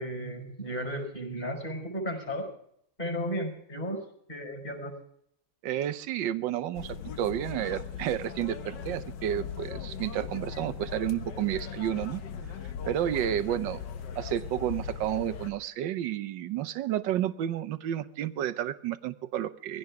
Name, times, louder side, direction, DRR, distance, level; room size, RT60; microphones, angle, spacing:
voice 1, 0.0-2.5 3.0-4.0 4.3-4.9, equal, 20° left, 3 dB, 5.4 m, -34 dB
voice 2, 5.6-12.2 12.9-13.8 14.2-19.8, right 11 dB, 65° right, 12 dB, 1.4 m, -31 dB
sound 1, 6.8-15.5, left 7 dB, 60° left, 1.5 m, -39 dB
23.0 x 16.5 x 3.6 m, 0.70 s
omnidirectional pair, 2.3 m